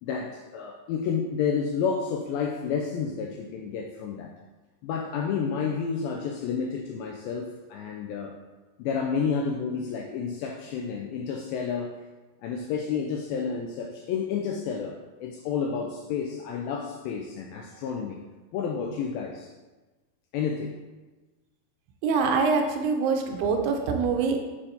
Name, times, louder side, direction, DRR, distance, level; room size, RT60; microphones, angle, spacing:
voice 1, 0.0-4.3 4.8-8.4 8.8-11.9 12.4-18.2 18.5-19.5 20.3-20.8, left 6 dB, 90° left, 2 dB, 2.0 m, -30 dB
voice 2, 22.0-24.4, right 5 dB, 80° right, 3 dB, 2.7 m, -24 dB
7.1 x 7.0 x 2.8 m, 1.2 s
omnidirectional pair, 4.7 m